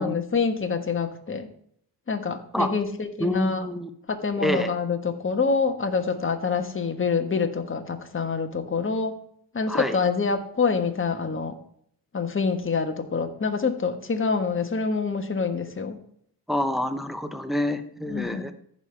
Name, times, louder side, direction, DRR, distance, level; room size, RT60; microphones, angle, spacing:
voice 1, 0.0-1.5 2.1-3.7 4.1-9.2 9.5-11.5 12.1-16.0 18.1-18.4, left 5 dB, 30° left, 6 dB, 1.3 m, -26 dB
voice 2, 3.2-3.9 4.4-4.7 9.7-10.0 16.5-18.5, left 1 dB, ahead, 7 dB, 0.9 m, -27 dB
14.5 x 5.5 x 3.3 m, 0.65 s
cardioid pair, 75°, 41 cm